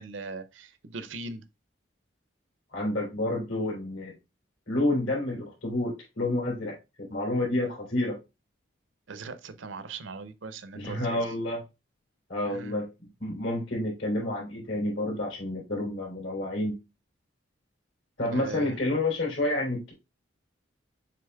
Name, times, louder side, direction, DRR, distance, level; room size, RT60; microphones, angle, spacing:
voice 1, 0.0-1.4 9.1-11.2 12.5-12.8 18.3-18.7, right 3 dB, 80° right, 0.6 m, -39 dB
voice 2, 2.7-4.1 4.7-8.2 10.7-11.6 12.3-12.9 13.2-16.8 18.2-19.9, left 1 dB, 85° left, 2.9 m, -29 dB
6.8 x 3.4 x 2.2 m
head